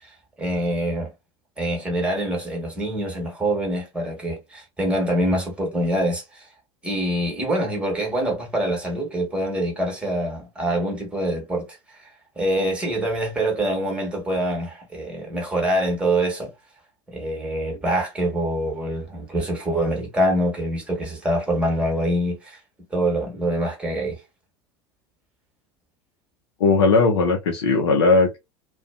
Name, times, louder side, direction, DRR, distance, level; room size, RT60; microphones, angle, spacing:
voice 1, 0.4-1.1 1.6-6.5 6.8-11.8 12.4-16.5 17.1-22.6 22.9-24.2, right 1 dB, 5° right, 1.3 m, -25 dB
voice 2, 26.6-28.4, left 3 dB, 65° left, 0.6 m, -18 dB
2.4 x 2.2 x 2.3 m
figure-of-eight pair, 75°, 15 cm